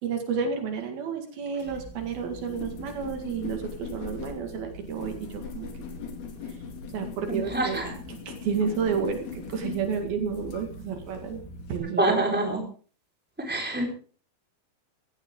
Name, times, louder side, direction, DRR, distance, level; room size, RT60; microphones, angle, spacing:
voice 1, 0.0-5.9 6.5-6.6 6.9-11.4 11.7-12.2, right 6 dB, 75° right, 5 dB, 3.9 m, -31 dB
sound 1, 1.6-11.8, left 4 dB, 80° left, 4.5 m, -40 dB
voice 2, 7.3-7.9 12.0-12.6 13.4-13.9, right 2 dB, 5° right, 0 dB, 4.2 m, -26 dB
17.0 x 15.5 x 3.8 m, 0.41 s
omnidirectional pair, 4.4 m